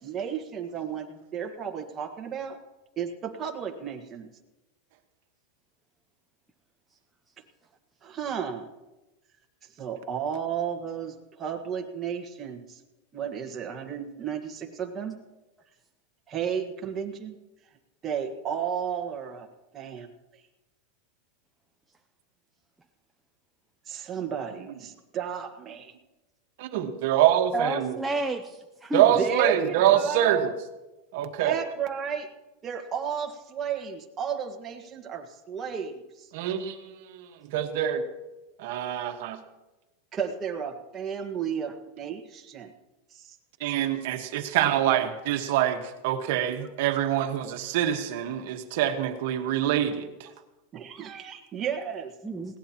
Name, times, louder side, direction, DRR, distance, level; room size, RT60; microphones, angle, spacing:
voice 1, 0.0-2.6 3.0-4.3 8.0-8.7 9.8-12.8 13.1-15.1 16.3-17.3 18.0-19.5 19.7-20.1 23.9-25.9 29.2-30.5 31.4-32.3 32.6-36.3 40.1-42.7 43.1-43.3 50.7-52.1, right 7 dB, 25° right, 3 dB, 1.6 m, -33 dB
voice 2, 26.6-28.0 28.9-30.4 31.1-31.6 36.3-38.0 38.6-39.4 43.6-50.3, right 11 dB, 65° right, 6 dB, 1.4 m, -25 dB
voice 3, 27.5-29.2 52.2-52.5, right 2 dB, 5° right, 2 dB, 0.6 m, -30 dB
20.5 x 17.0 x 3.0 m, 1.1 s
supercardioid pair, 150°, 0 cm